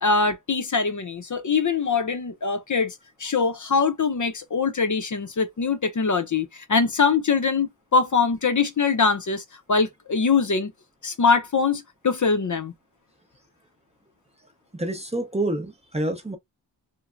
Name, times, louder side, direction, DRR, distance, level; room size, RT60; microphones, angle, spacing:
voice 1, 0.0-9.4 9.7-10.7 11.0-12.7, left 5 dB, 40° left, 0.6 m, -23 dB
voice 2, 14.7-16.4, right 1 dB, 15° right, 0.6 m, -27 dB
3.1 x 2.2 x 2.4 m
cardioid pair, 60°, 45 cm